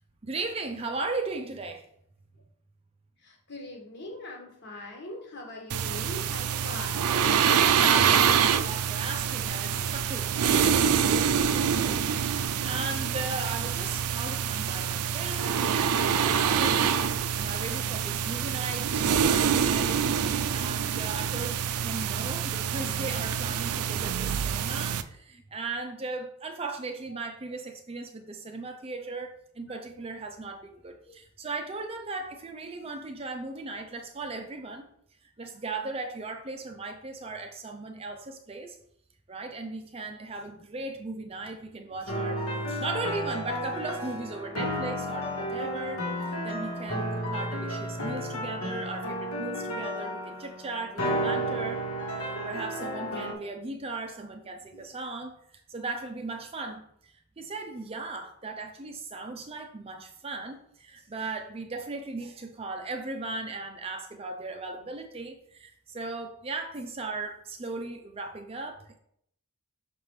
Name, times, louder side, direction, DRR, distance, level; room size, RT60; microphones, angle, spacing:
voice 1, 0.2-1.9 7.3-34.9 35.2-38.8 39.3-51.8 52.2-69.0, right 3 dB, 25° right, 5 dB, 0.5 m, -37 dB
voice 2, 3.2-7.4 13.8-13.9 29.9-30.0, left 2 dB, 50° left, 0 dB, 1.5 m, -41 dB
sound 1, 5.7-25.0, right 7 dB, 85° right, 0.4 m, -26 dB
sound 2, 42.1-53.3, equal, 70° left, 1.5 m, -32 dB
5.9 x 5.6 x 3.2 m, 0.71 s
head